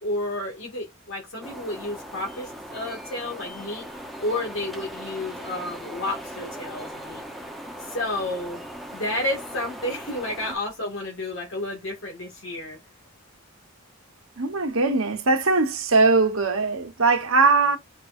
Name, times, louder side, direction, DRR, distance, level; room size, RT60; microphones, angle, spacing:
voice 1, 0.0-3.9 4.2-7.2 7.8-8.6 8.9-12.8, left 1 dB, 70° left, 2.3 m, -31 dB
sound 1, 1.4-10.6, equal, ahead, 0.9 m, -39 dB
voice 2, 14.4-17.8, right 3 dB, 85° right, 1.3 m, -20 dB
5.4 x 3.1 x 2.7 m
head